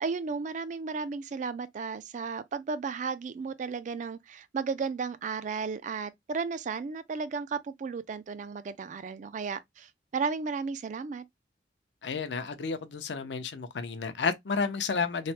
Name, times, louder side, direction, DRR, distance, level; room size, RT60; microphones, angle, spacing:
voice 1, 0.0-11.2, right 5 dB, 45° right, 0.3 m, -34 dB
voice 2, 12.0-15.3, left 5 dB, 75° left, 0.5 m, -31 dB
3.1 x 2.0 x 2.7 m
head